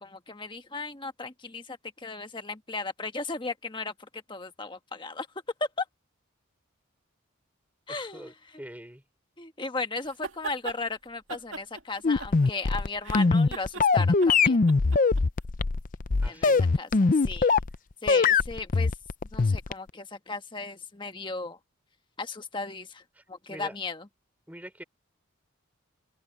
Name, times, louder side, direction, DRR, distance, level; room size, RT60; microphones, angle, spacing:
voice 1, 0.0-5.3 5.8-5.9 7.9-8.3 9.4-14.6 16.2-16.9 17.2-17.5 18.0-18.9 19.3-21.6 22.2-23.0 23.3-24.1, left 3 dB, 25° left, 1.4 m, -36 dB
voice 2, 7.9-9.0 16.2-16.7 23.2-23.8 24.5-24.8, right 1 dB, 10° right, 3.9 m, -45 dB
sound 1, 10.1-10.8 11.3-12.7 13.0-15.2, right 4 dB, 70° right, 2.4 m, -39 dB
sound 2, 12.0-17.8 18.1-19.9, left 4 dB, 40° left, 0.5 m, -22 dB
head